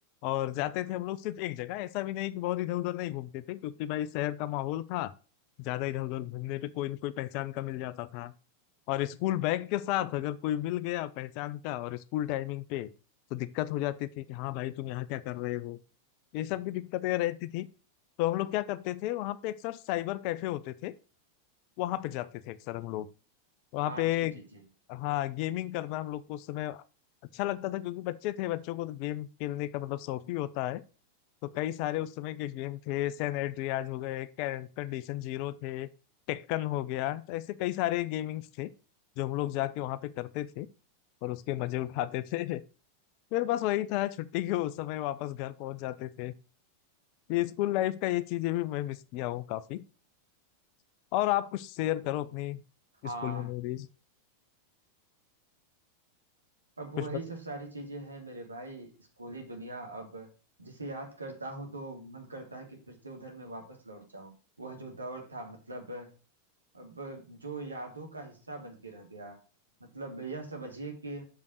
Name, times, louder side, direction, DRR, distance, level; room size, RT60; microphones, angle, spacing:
voice 1, 0.2-5.1 5.6-8.3 8.9-12.9 13.3-15.8 16.3-17.7 18.2-20.9 21.8-23.1 23.7-24.3 24.9-26.8 27.3-30.8 31.4-35.9 36.3-38.7 39.2-40.7 41.2-42.6 43.3-46.3 47.3-49.8 51.1-52.6 53.0-53.9 57.0-57.2, left 15 dB, 45° left, 0.6 m, -32 dB
voice 2, 23.9-24.6 53.0-53.5 56.8-60.3 60.6-66.1 66.7-69.4 69.8-71.2, right 2 dB, 80° right, 2.5 m, -42 dB
6.8 x 5.3 x 6.2 m
figure-of-eight pair, 90°, 0 cm